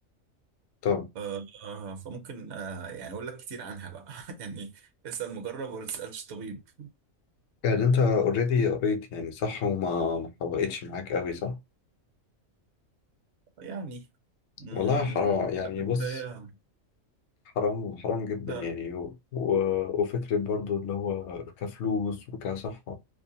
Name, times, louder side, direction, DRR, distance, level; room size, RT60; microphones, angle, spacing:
voice 1, 1.2-6.9 13.6-14.1 14.6-16.6 18.5-18.7, right 6 dB, 60° right, 0.9 m, -39 dB
voice 2, 7.6-11.6 14.7-16.2 17.6-23.0, left 6 dB, 65° left, 0.8 m, -28 dB
2.5 x 2.1 x 2.7 m
omnidirectional pair, 1.4 m